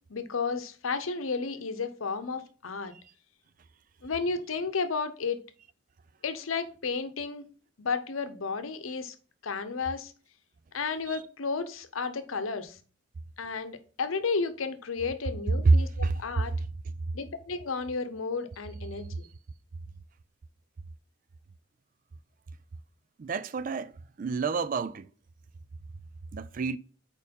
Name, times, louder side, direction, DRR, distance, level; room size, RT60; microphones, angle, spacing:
voice 1, 0.1-2.9 4.0-5.4 6.2-7.5 7.8-9.1 9.4-10.1 10.7-12.8 13.4-16.5 17.1-19.3, left 4 dB, 80° left, 0.8 m, -32 dB
voice 2, 23.2-23.9 24.2-25.1 26.3-26.8, right 3 dB, 40° right, 0.3 m, -26 dB
4.7 x 4.5 x 5.2 m
head